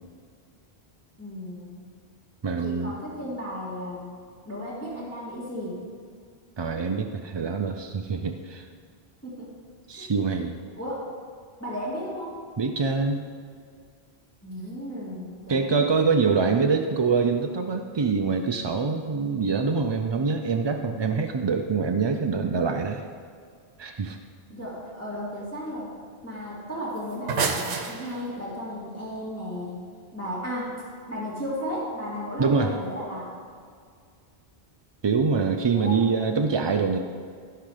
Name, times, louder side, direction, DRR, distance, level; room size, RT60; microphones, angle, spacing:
voice 1, 1.2-1.8 2.6-4.1 4.5-5.8 9.2-9.5 9.9-10.1 10.8-11.1 11.6-12.4 14.4-15.9 24.5-25.9 26.2-29.8 30.1-30.7 31.1-33.3 35.7-36.0, equal, 15° left, -8 dB, 2.1 m, -34 dB
voice 2, 2.4-2.9 6.6-8.7 9.9-10.6 12.6-13.3 15.5-23.0 23.8-24.2 32.4-32.8 35.0-37.0, right 5 dB, 45° right, 5 dB, 0.3 m, -25 dB
sound 1, 27.0-28.5, right 5 dB, 70° right, 1.1 m, -29 dB
15.5 x 5.7 x 4.9 m, 2.1 s
omnidirectional pair, 1.1 m